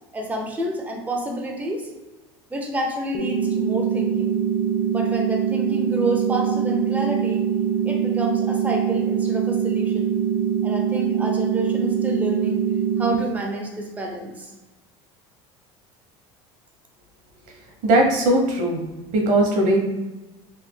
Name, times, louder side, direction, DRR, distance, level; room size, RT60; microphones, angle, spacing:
voice 1, 0.1-1.9 2.5-4.3 4.9-7.4 7.8-10.1 10.6-12.6 13.0-14.5, right 1 dB, 10° right, 1 dB, 0.6 m, -29 dB
sound 1, 3.1-13.2, right 8 dB, 25° left, 0.7 m, -23 dB
voice 2, 17.8-18.8 19.1-19.8, right 1 dB, 65° right, 1 dB, 1.0 m, -19 dB
4.0 x 3.1 x 2.2 m, 1.1 s
supercardioid pair, 95°, 14 cm